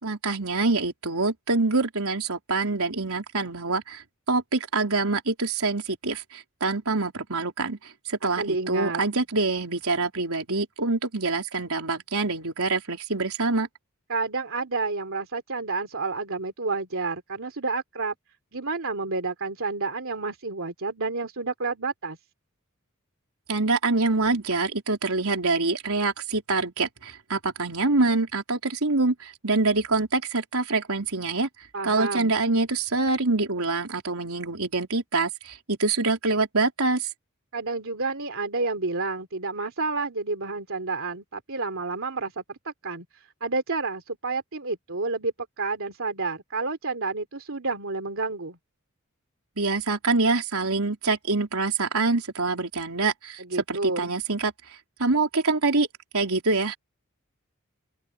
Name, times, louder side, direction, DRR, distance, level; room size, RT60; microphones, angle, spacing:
voice 1, 0.0-13.7 23.5-31.5 31.8-37.1 49.6-53.4 53.7-54.5 55.0-55.9 56.1-56.8, right 3 dB, 90° right, 3.9 m, -25 dB
voice 2, 8.2-9.0 14.1-18.1 18.5-22.2 31.7-32.4 37.5-48.6 53.4-54.1, right 3 dB, 65° right, 3.1 m, -30 dB
open air
head